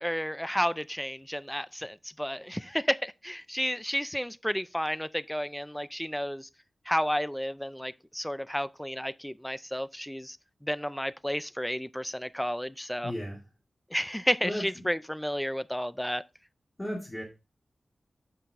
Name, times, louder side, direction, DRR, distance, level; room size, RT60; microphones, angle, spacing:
voice 1, 0.0-6.5 6.9-10.4 10.6-13.1 13.9-16.2, equal, 5° left, 0.4 m, -32 dB
voice 2, 13.0-13.4 14.4-14.6 16.8-17.2, equal, 20° left, 2.3 m, -34 dB
7.3 x 5.7 x 3.5 m
wide cardioid pair, 75°, 0 cm